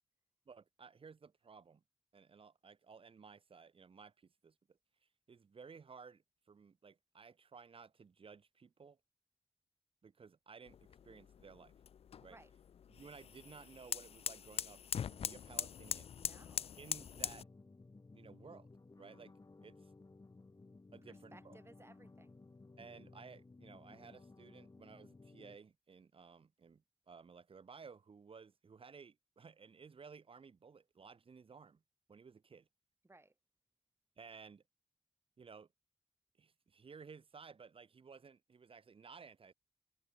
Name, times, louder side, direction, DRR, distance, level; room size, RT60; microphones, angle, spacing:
voice 1, 0.5-1.8 2.1-4.8 5.3-9.0 10.0-10.8 11.0-11.7 12.2-12.4 12.9-14.8 15.1-16.1 16.8-17.5 18.1-18.7 19.0-19.3 19.6-19.9 20.9-21.6 22.8-31.8 32.1-32.7 34.2-34.6 35.4-35.7 36.4-39.5, right 5 dB, 65° right, 2.7 m, -56 dB
sound 1, 10.7-17.4, left 8 dB, 80° left, 0.5 m, -43 dB
voice 2, 16.1-16.7 21.1-22.3 33.0-33.3, right 2 dB, 25° right, 5.6 m, -61 dB
sound 2, 17.1-25.6, left 3 dB, 40° left, 6.5 m, -58 dB
cardioid pair, 65°, 10 cm